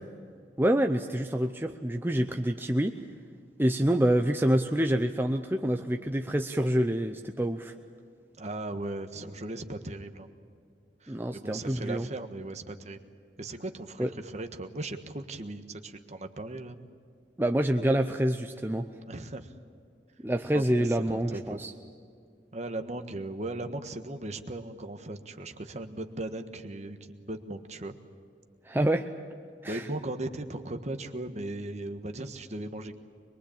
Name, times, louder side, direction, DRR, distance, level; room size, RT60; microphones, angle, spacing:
voice 1, 0.6-3.0 3.6-7.7 11.1-12.0 14.0-14.1 17.4-18.9 20.2-21.7 28.7-29.1 29.6-29.8, right 1 dB, 10° right, 5 dB, 0.7 m, -27 dB
voice 2, 8.4-10.3 11.0-13.0 13.4-16.9 19.1-19.6 20.5-21.7 22.5-28.0 29.6-33.0, right 2 dB, 40° right, 7 dB, 1.5 m, -38 dB
23.5 x 22.5 x 8.7 m, 2.3 s
head